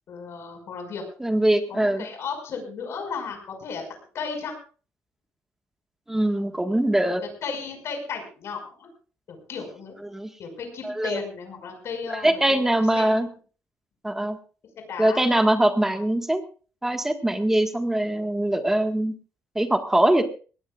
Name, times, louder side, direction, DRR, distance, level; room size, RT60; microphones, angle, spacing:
voice 1, 0.1-1.0 1.7-3.8 4.1-4.5 7.1-8.9 9.3-10.0 10.4-12.4 12.7-13.3 14.8-15.3, left 5 dB, 60° left, 4 dB, 5.7 m, -34 dB
voice 2, 1.2-2.0 6.1-7.2 10.0-10.3 10.8-11.2 12.1-13.3 14.0-14.4 15.0-16.4 16.8-19.1 19.5-20.2, right 1 dB, 10° right, 6 dB, 1.6 m, -22 dB
21.0 x 18.0 x 2.5 m, 0.38 s
cardioid pair, 155°, 5 cm